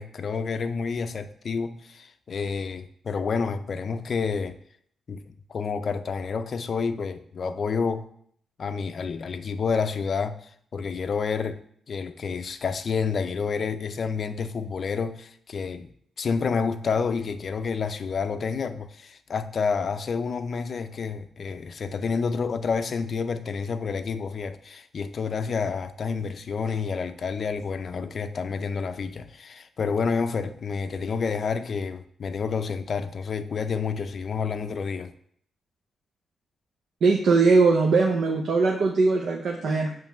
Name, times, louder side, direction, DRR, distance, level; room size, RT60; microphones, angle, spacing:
voice 1, 0.0-4.6 5.1-5.2 5.5-8.1 8.6-15.9 16.2-35.1, left 5 dB, 50° left, 0.5 m, -29 dB
voice 2, 37.0-40.0, right 4 dB, 75° right, 0.7 m, -20 dB
7.2 x 3.2 x 5.7 m
wide cardioid pair, 125°, 0 cm